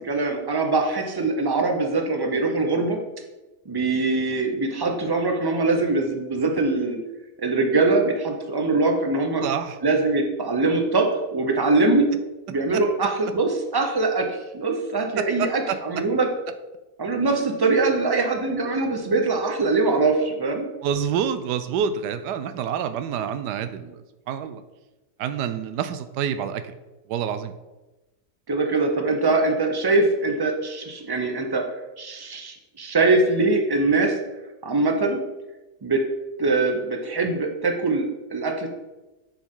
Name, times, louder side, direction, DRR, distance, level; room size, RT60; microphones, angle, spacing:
voice 1, 0.0-3.0 3.7-7.0 7.4-9.4 9.8-12.1 12.5-16.3 17.0-20.7 28.5-31.6 32.0-34.1 34.6-35.2 35.8-36.0 36.4-38.7, right 3 dB, 30° right, 3 dB, 0.4 m, -22 dB
voice 2, 9.4-9.8 12.7-12.8 15.2-16.0 20.8-24.6 25.2-26.7 27.1-27.5, right 8 dB, 90° right, 11 dB, 1.2 m, -27 dB
7.0 x 6.3 x 3.7 m, 1.1 s
omnidirectional pair, 1.7 m